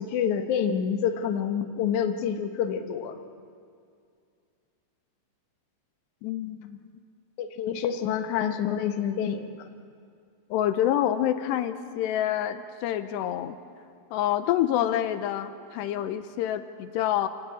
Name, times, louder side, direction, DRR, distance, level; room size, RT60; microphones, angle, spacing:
voice 1, 0.0-3.2 7.4-9.5, left 8 dB, 65° left, 5 dB, 2.0 m, -27 dB
voice 2, 6.2-6.8 10.5-13.6 14.1-17.3, left 11 dB, 80° left, 10 dB, 2.9 m, -27 dB
27.0 x 18.5 x 8.5 m, 2.3 s
omnidirectional pair, 5.0 m